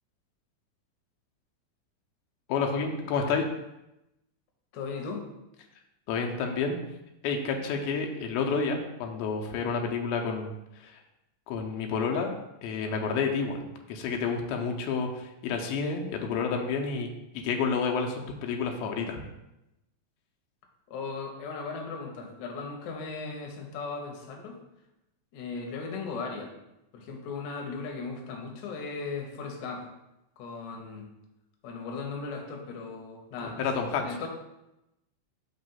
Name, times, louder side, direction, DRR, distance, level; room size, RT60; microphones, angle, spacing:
voice 1, 2.5-3.5 6.1-6.8 7.2-10.5 10.8-10.9 11.5-12.3 12.6-19.2 33.4-34.3, left 5 dB, 85° left, 2 dB, 2.5 m, -30 dB
voice 2, 4.7-5.3 20.9-24.6 25.3-26.5 26.9-29.9 30.4-31.1 31.6-33.7 34.0-34.3, left 4 dB, 70° left, 1 dB, 2.0 m, -37 dB
5.7 x 3.0 x 5.5 m, 0.90 s
omnidirectional pair, 4.2 m